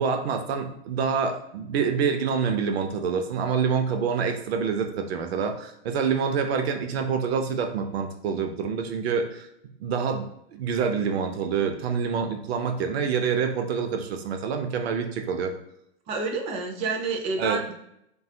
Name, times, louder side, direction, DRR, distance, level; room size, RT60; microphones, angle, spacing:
voice 1, 0.0-9.5 9.8-10.2 10.5-15.5 17.4-17.6, right 6 dB, 75° right, 5 dB, 0.5 m, -26 dB
voice 2, 16.1-17.7, right 4 dB, 20° right, 3 dB, 0.3 m, -29 dB
2.7 x 2.3 x 2.6 m, 0.77 s
hypercardioid pair, 125°, 32 cm